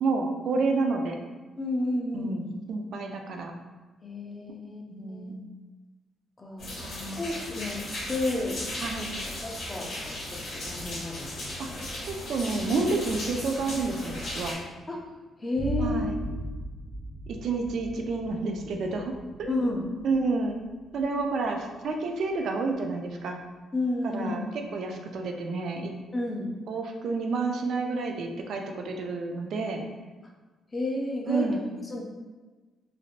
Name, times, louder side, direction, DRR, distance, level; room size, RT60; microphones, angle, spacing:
voice 1, 0.0-1.2 2.1-3.5 4.9-5.4 6.8-7.2 8.8-9.2 11.6-11.7 12.1-14.6 15.8-16.2 17.3-19.1 19.4-19.5 20.0-20.6 20.9-23.4 24.0-24.4 24.7-25.9 26.7-29.8 31.3-31.7, right 3 dB, 65° right, 3 dB, 0.4 m, -29 dB
voice 2, 1.6-2.4 4.0-4.8 5.1-5.3 6.4-7.8 8.1-8.6 9.0-9.1 9.4-11.8 14.9-15.0 15.4-16.4 19.5-19.8 23.7-24.3 26.1-26.5 30.7-31.5 31.8-32.0, left 2 dB, 25° left, -1 dB, 0.6 m, -31 dB
sound 1, 6.6-14.5, left 1 dB, 60° left, 1.4 m, -36 dB
sound 2, 15.6-23.0, right 2 dB, 10° right, 0.9 m, -38 dB
3.2 x 2.5 x 2.4 m, 1.3 s
cardioid pair, 90°, 0 cm